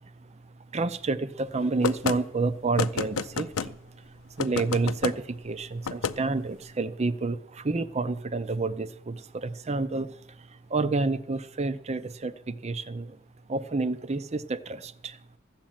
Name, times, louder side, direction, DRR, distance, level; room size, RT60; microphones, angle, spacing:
voice 1, 0.7-3.8 4.4-10.1 10.7-13.2 13.5-15.2, right 3 dB, 30° right, 15 dB, 0.6 m, -29 dB
sound 1, 1.8-2.2 2.8-3.7 4.4-5.2 5.8-6.2, left 5 dB, 85° left, 0.6 m, -29 dB
13.5 x 7.4 x 8.9 m, 0.74 s
head